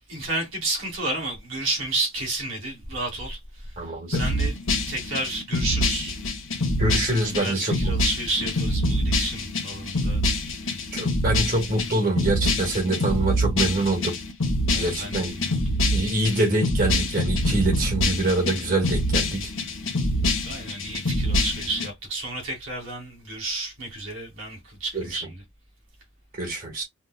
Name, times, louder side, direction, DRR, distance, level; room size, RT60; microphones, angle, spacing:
voice 1, 0.1-4.6 4.9-6.1 7.2-10.2 14.6-15.8 20.4-25.4, right 2 dB, 65° right, 2.2 m, -31 dB
voice 2, 3.8-4.2 6.8-7.9 10.9-14.2 14.8-15.3 15.9-19.5 24.9-25.0 26.3-26.8, right 2 dB, 40° right, 1.4 m, -25 dB
sound 1, 4.1-21.9, left 1 dB, 65° left, 1.0 m, -25 dB
5.4 x 2.2 x 2.2 m
head